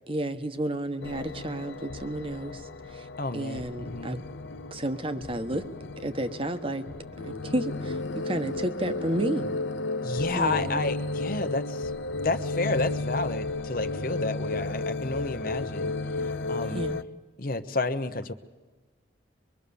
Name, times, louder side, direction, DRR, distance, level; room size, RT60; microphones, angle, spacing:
voice 1, 0.1-3.1 3.3-4.2 4.7-5.6 6.0-6.9 7.2-9.5 10.3-10.8 16.7-17.0, right 1 dB, 30° right, 9 dB, 1.2 m, -31 dB
sound 1, 1.0-17.0, left 2 dB, 70° left, 0.7 m, -33 dB
voice 2, 3.2-4.2 10.0-11.9 12.2-15.9 16.5-16.9 17.4-18.3, left 3 dB, 50° left, 11 dB, 1.1 m, -30 dB
24.5 x 23.0 x 7.0 m, 1.3 s
head